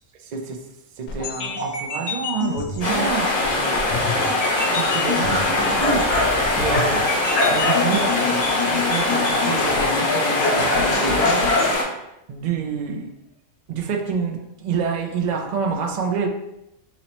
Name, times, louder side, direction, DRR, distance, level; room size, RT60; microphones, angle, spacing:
voice 1, 0.2-0.6 1.0-4.3 4.7-7.1 7.5-12.0 12.3-13.1 13.7-16.3, right 5 dB, 75° right, 3 dB, 0.4 m, -28 dB
sound 1, 1.1-11.8, left 5 dB, 90° left, 1.0 m, -29 dB
sound 2, 2.8-11.8, left 2 dB, 35° left, 0.9 m, -21 dB
4.0 x 2.9 x 2.9 m, 0.88 s
omnidirectional pair, 1.3 m